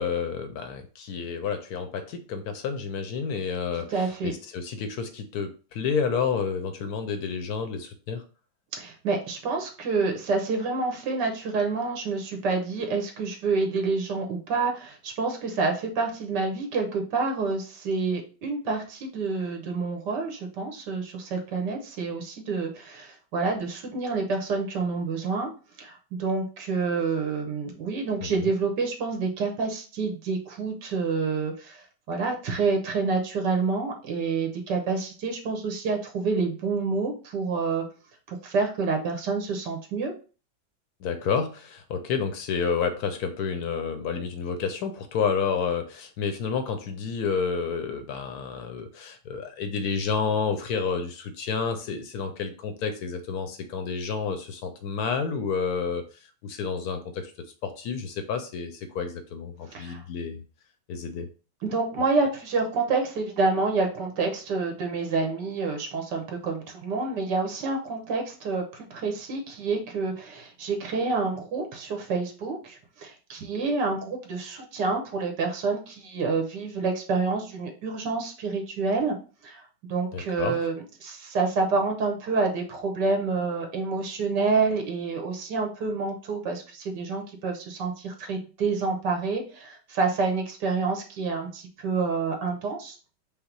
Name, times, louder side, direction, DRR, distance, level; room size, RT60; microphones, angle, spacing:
voice 1, 0.0-8.2 28.2-28.5 41.0-56.0 56.4-57.3 57.6-60.4 60.9-61.3 80.1-80.6, left 6 dB, 70° left, 7 dB, 1.0 m, -30 dB
voice 2, 3.9-4.3 8.8-25.5 25.8-37.8 38.3-40.1 59.7-60.0 61.6-79.1 79.4-93.0, right 4 dB, 75° right, 3 dB, 1.6 m, -28 dB
5.3 x 2.0 x 4.5 m, 0.37 s
omnidirectional pair, 1.9 m